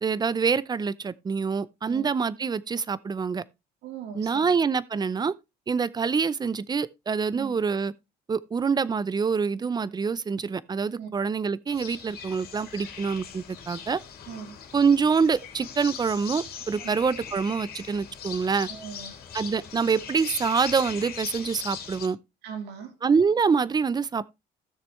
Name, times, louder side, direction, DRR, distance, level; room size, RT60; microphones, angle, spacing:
voice 1, 0.0-3.4 4.1-5.3 5.7-7.9 8.3-14.0 14.7-18.7 19.3-22.2 23.0-24.2, right 5 dB, 25° right, 0.6 m, -25 dB
voice 2, 3.8-4.6 7.3-7.5 11.0-11.1 14.3-14.6 16.8-17.0 18.7-19.1 22.4-22.9, right 7 dB, 85° right, 3.6 m, -39 dB
sound 1, 11.7-22.1, left 7 dB, 65° left, 2.7 m, -40 dB
15.5 x 6.6 x 3.2 m
cardioid pair, 110°, 17 cm